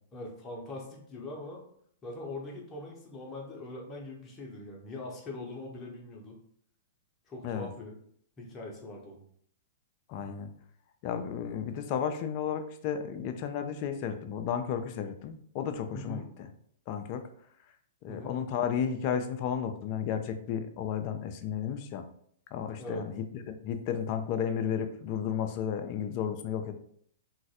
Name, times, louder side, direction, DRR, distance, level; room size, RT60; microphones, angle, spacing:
voice 1, 0.1-1.6 2.0-6.4 7.3-7.9 8.4-9.2 15.9-16.3 18.1-18.4 22.8-23.1, left 2 dB, 20° left, -1 dB, 0.7 m, -42 dB
voice 2, 10.1-10.5 11.0-16.5 16.9-17.2 18.0-22.0 22.5-26.7, left 8 dB, 40° left, 7 dB, 0.3 m, -33 dB
3.0 x 2.4 x 2.7 m, 0.64 s
figure-of-eight pair, 110°, 0 cm